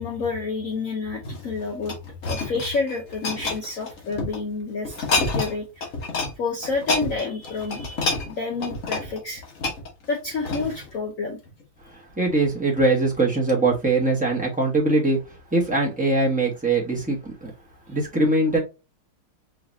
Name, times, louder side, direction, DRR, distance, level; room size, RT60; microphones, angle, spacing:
voice 1, 0.0-2.0 2.2-5.9 6.4-9.4 10.1-11.4, left 4 dB, 75° left, 0.7 m, -29 dB
sound 1, 1.2-4.4 4.9-5.6 5.8-6.3 6.6-10.9 11.5-11.6, left 3 dB, 45° left, 1.4 m, -28 dB
voice 2, 12.2-15.2 15.5-17.5 17.9-18.6, right 2 dB, 5° right, 0.6 m, -21 dB
4.8 x 3.2 x 2.7 m
omnidirectional pair, 2.3 m